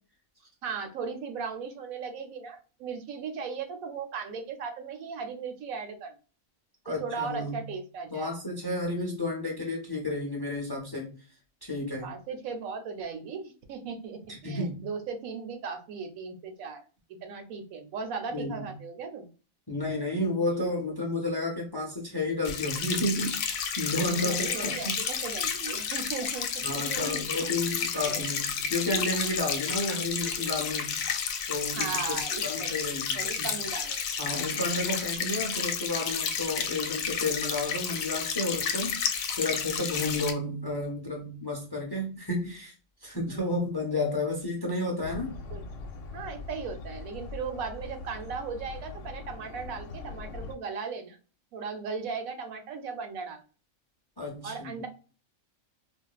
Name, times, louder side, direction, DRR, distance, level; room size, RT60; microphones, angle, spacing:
voice 1, 0.6-6.2 6.9-8.3 12.0-16.8 17.1-19.3 24.0-27.8 28.0-28.3 31.8-32.9 33.1-34.4 43.3-43.6 45.5-45.6 46.1-51.2 51.5-53.4 54.4-54.9, right 5 dB, 85° right, 6 dB, 1.1 m, -37 dB
voice 2, 6.8-7.7 8.1-11.2 11.6-12.2 14.3-14.9 18.3-18.8 19.7-25.0 26.6-31.1 31.5-33.6 34.2-39.0 39.4-42.7 43.0-45.4 54.2-54.8, left 2 dB, 25° left, 0 dB, 0.5 m, -32 dB
sound 1, 22.4-40.3, left 7 dB, 90° left, 1.0 m, -31 dB
sound 2, 45.0-50.6, left 4 dB, 70° left, 0.9 m, -41 dB
4.3 x 2.0 x 2.3 m, 0.36 s
omnidirectional pair, 1.4 m